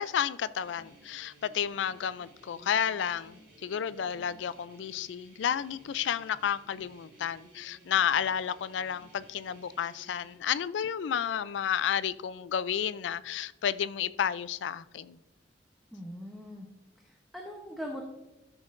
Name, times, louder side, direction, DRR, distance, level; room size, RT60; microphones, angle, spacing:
voice 1, 0.0-15.2, left 8 dB, 75° left, 0.3 m, -31 dB
sound 1, 0.6-10.4, right 1 dB, 75° right, 3.2 m, -57 dB
voice 2, 15.9-16.7 17.0-18.0, equal, ahead, 0.8 m, -41 dB
13.0 x 6.3 x 2.5 m
head